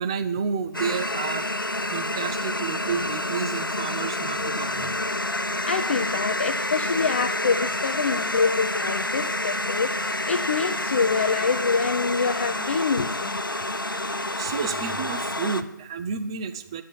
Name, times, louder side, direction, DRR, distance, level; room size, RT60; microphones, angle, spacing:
voice 1, 0.0-4.9 14.4-16.8, right 6 dB, 15° right, 8 dB, 0.5 m, -31 dB
sound 1, 0.7-15.6, left 1 dB, 85° left, 1.2 m, -28 dB
voice 2, 5.7-13.4, left 5 dB, 35° left, 5 dB, 0.7 m, -26 dB
12.5 x 7.5 x 9.9 m, 0.81 s
figure-of-eight pair, 155°, 11 cm